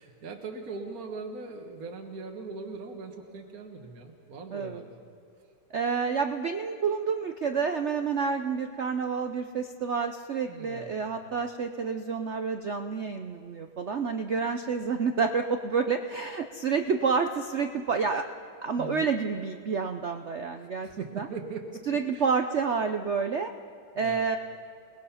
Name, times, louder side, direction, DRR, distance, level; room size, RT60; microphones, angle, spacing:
voice 1, 0.0-5.0 10.5-11.1 18.8-19.1 20.8-21.8 22.1-22.3 24.0-24.3, right 4 dB, 50° right, 2 dB, 1.8 m, -40 dB
voice 2, 4.5-4.8 5.7-18.3 18.6-20.9 21.2-21.3 21.9-23.5 24.0-24.4, right 5 dB, 65° right, 7 dB, 0.7 m, -29 dB
29.0 x 20.0 x 5.7 m, 2.4 s
omnidirectional pair, 2.1 m